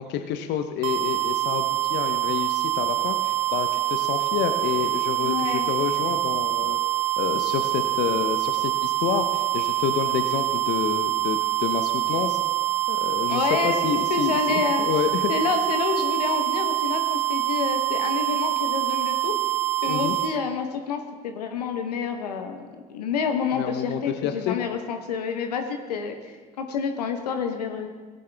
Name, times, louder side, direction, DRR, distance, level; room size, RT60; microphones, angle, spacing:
voice 1, 0.0-6.8 7.2-12.4 12.9-15.3 19.8-20.2 23.5-24.6, left 9 dB, 60° left, 8 dB, 0.8 m, -29 dB
sound 1, 0.8-20.3, right 15 dB, 65° right, 0.7 m, -25 dB
voice 2, 5.2-5.7 13.3-13.8 14.1-14.8 15.3-19.3 19.8-27.9, left 6 dB, 85° left, 6 dB, 1.0 m, -28 dB
15.5 x 9.3 x 3.4 m, 1.4 s
hypercardioid pair, 65°, 20 cm